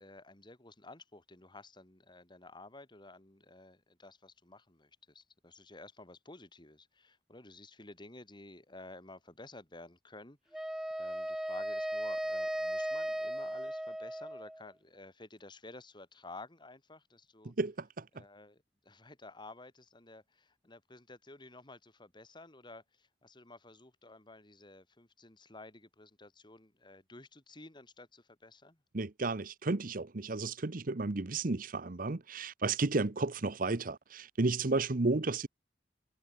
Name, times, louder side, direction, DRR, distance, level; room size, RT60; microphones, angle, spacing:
voice 1, 0.0-10.7 11.0-17.5 18.1-28.8, left 2 dB, 25° left, 3.1 m, -53 dB
Wind instrument woodwind instrument, 10.5-14.7, equal, 5° right, 0.5 m, -36 dB
voice 2, 17.4-18.2 28.9-35.5, right 3 dB, 55° right, 0.9 m, -33 dB
head